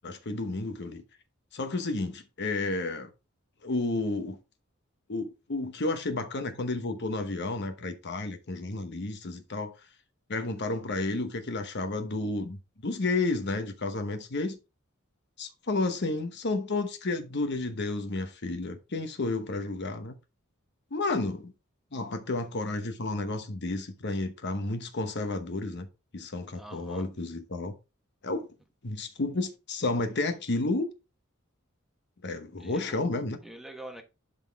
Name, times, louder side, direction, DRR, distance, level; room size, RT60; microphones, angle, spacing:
voice 1, 0.0-1.0 1.5-3.1 3.6-4.4 5.1-9.7 10.3-12.6 12.8-14.6 15.4-20.1 20.9-21.5 21.9-25.9 26.1-27.7 28.2-28.5 28.8-30.9 32.2-33.4, left 2 dB, 55° left, 1.0 m, -31 dB
voice 2, 26.5-27.1 32.6-33.1 33.4-34.0, right 1 dB, ahead, 1.1 m, -45 dB
11.5 x 3.9 x 3.4 m
head